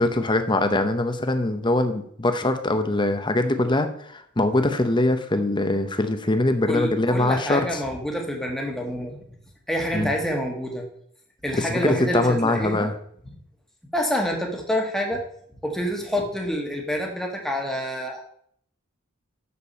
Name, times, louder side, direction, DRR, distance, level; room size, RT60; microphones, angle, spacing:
voice 1, 0.0-7.8 9.9-10.1 11.5-12.9, left 2 dB, 20° left, 8 dB, 0.8 m, -22 dB
voice 2, 6.7-9.2 9.7-10.9 11.4-12.9 13.9-15.2 15.6-18.2, equal, ahead, 1 dB, 1.4 m, -27 dB
7.0 x 6.8 x 5.5 m, 0.66 s
head